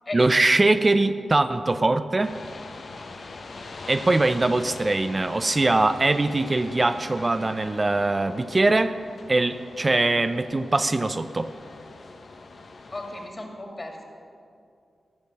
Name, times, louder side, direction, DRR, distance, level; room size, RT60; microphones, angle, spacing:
voice 1, 0.1-2.4 3.9-8.9 9.3-11.5, right 2 dB, 35° right, 10 dB, 0.5 m, -22 dB
sound 1, 2.2-13.3, left 3 dB, 60° left, 1.0 m, -42 dB
voice 2, 12.9-14.0, left 2 dB, 40° left, 2 dB, 2.6 m, -35 dB
14.0 x 6.4 x 7.3 m, 2.4 s
supercardioid pair, 40°, 0 cm